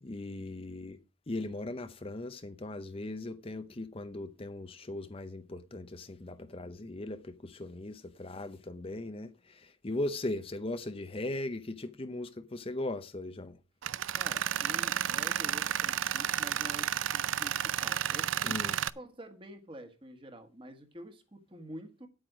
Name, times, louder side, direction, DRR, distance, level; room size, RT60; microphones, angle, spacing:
voice 1, 0.0-1.0 1.3-13.6 18.4-18.8, left 2 dB, 30° left, 0.7 m, -38 dB
Tools, 13.8-18.9, right 10 dB, 80° right, 0.5 m, -31 dB
voice 2, 14.1-18.5 18.9-22.1, right 1 dB, 25° right, 1.6 m, -47 dB
9.6 x 8.8 x 5.0 m
head